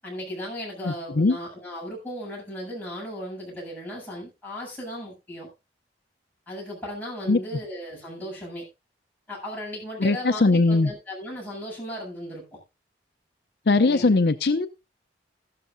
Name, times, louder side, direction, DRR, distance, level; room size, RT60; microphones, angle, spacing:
voice 1, 0.0-5.5 6.5-8.7 9.3-12.6 13.8-14.2, equal, 10° left, -5 dB, 7.9 m, -36 dB
voice 2, 0.8-1.4 7.3-7.4 10.0-10.9 13.7-14.7, left 3 dB, 60° left, 9 dB, 0.6 m, -20 dB
15.0 x 12.5 x 2.6 m, 0.27 s
head